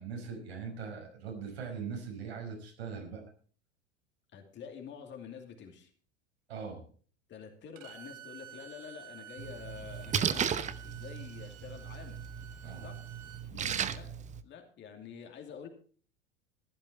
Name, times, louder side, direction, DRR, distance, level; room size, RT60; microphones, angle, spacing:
voice 1, 0.0-3.2 6.5-6.8 12.6-12.9 13.5-13.9, right 6 dB, 65° right, 2 dB, 5.7 m, -41 dB
voice 2, 4.3-5.9 7.3-12.2 12.8-13.0 13.5-14.1 14.4-15.7, left 7 dB, 30° left, 4 dB, 2.7 m, -47 dB
Bowed string instrument, 7.8-13.5, right 10 dB, 40° right, 2.0 m, -51 dB
Splash splatter, 9.4-14.4, right 8 dB, 20° right, 0.9 m, -36 dB
14.5 x 12.0 x 4.3 m, 0.43 s
figure-of-eight pair, 80°, 34 cm